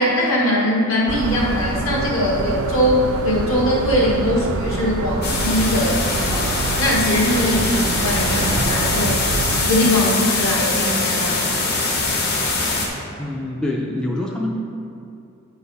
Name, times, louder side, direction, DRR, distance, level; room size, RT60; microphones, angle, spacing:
voice 1, 0.0-9.2 9.6-11.6, left 1 dB, 65° left, -3 dB, 1.3 m, -21 dB
sound 1, 1.1-9.7, right 3 dB, 80° right, 0.5 m, -26 dB
sound 2, 5.2-12.9, left 3 dB, 50° left, 1.0 m, -22 dB
voice 2, 13.2-14.5, left 1 dB, 5° left, -2 dB, 0.3 m, -25 dB
8.5 x 3.9 x 4.0 m, 2.6 s
head